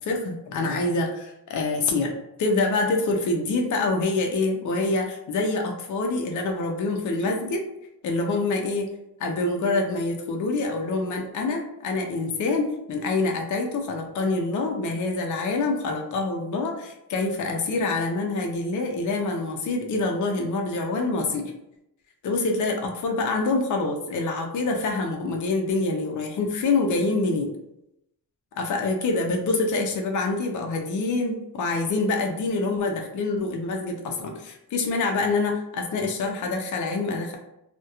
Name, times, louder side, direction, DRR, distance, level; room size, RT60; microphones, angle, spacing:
voice 1, 0.0-7.6 8.0-8.9 9.2-21.5 22.2-27.5 28.6-37.4, left 3 dB, 50° left, 2 dB, 0.4 m, -26 dB
2.8 x 2.1 x 2.3 m, 0.83 s
wide cardioid pair, 140°, 39 cm